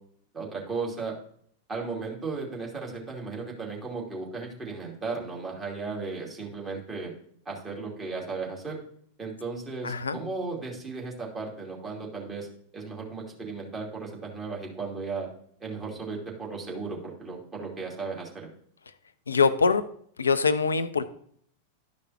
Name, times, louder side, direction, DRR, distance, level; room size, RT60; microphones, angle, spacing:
voice 1, 0.3-1.1 1.7-7.1 7.4-8.8 9.2-12.5 12.7-15.3 15.6-18.5, right 4 dB, 20° right, -3 dB, 2.7 m, -35 dB
voice 2, 9.8-10.2 19.3-19.9 20.2-21.0, left 5 dB, 75° left, 13 dB, 0.5 m, -23 dB
12.5 x 5.2 x 2.9 m, 0.63 s
figure-of-eight pair, 90°, 0 cm